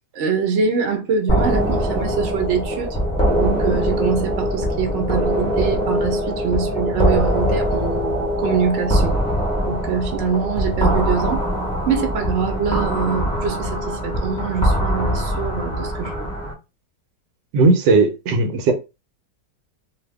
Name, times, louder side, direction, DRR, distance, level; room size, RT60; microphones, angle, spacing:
voice 1, 0.1-2.9 3.4-9.2 9.6-11.5 11.9-16.3, right 6 dB, 55° right, 0.9 m, -24 dB
sound 1, 1.3-1.8 2.3-2.8 3.3-3.8 4.3-4.8 5.3-5.8 6.3-6.8 7.3-7.8 8.3-8.8 9.3-9.8 10.3-10.8, left 7 dB, 70° left, 0.8 m, -38 dB
sound 2, 1.3-16.5, equal, 5° left, 0.4 m, -22 dB
voice 2, 17.5-18.7, right 3 dB, 90° right, 1.4 m, -16 dB
2.7 x 2.6 x 3.4 m
omnidirectional pair, 1.9 m